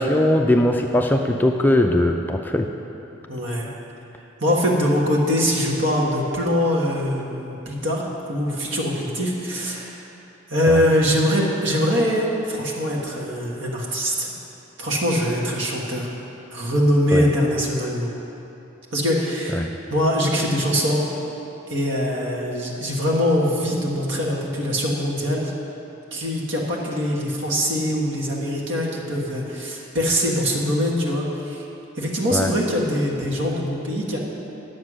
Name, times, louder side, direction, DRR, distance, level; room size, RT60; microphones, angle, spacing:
voice 1, 0.0-2.7 10.7-10.8 17.1-17.3 19.5-19.7 32.3-32.5, left 1 dB, 10° left, 3 dB, 0.3 m, -20 dB
voice 2, 3.3-3.7 4.4-8.0 8.3-10.0 10.5-14.3 14.8-16.1 16.5-18.1 18.9-21.0 21.7-25.5 26.1-31.6 32.0-34.2, equal, 65° right, -2 dB, 1.6 m, -23 dB
9.6 x 7.3 x 6.2 m, 3.0 s
head